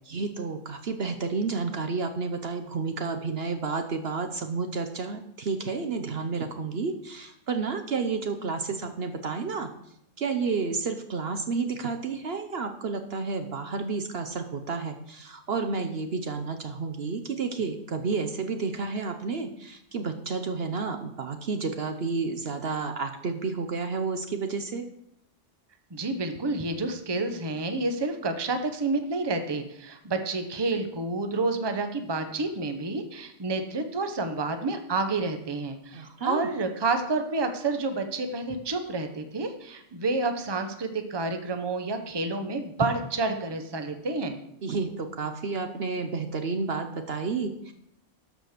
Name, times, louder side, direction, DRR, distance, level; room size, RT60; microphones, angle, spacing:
voice 1, 0.1-9.7 10.2-24.9 35.9-36.5 44.6-47.7, right 4 dB, 55° right, 7 dB, 1.0 m, -31 dB
voice 2, 25.9-44.4, right 3 dB, 25° right, 7 dB, 0.8 m, -29 dB
12.5 x 5.1 x 6.6 m, 0.76 s
omnidirectional pair, 1.3 m